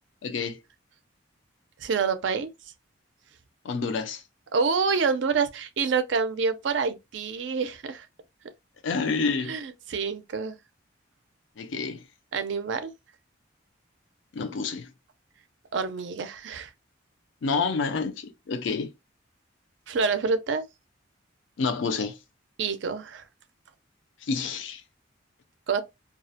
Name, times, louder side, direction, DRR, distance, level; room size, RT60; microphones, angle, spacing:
voice 1, 0.2-0.6 3.6-4.2 8.8-9.5 11.6-12.0 14.4-14.9 17.4-18.9 21.6-22.2 24.2-24.8, left 4 dB, 70° left, 0.4 m, -28 dB
voice 2, 1.8-2.5 4.5-8.1 9.5-10.5 12.3-12.9 15.7-16.7 19.9-20.6 22.6-23.3 25.7-25.8, right 5 dB, 65° right, 0.4 m, -27 dB
2.3 x 2.0 x 2.6 m
head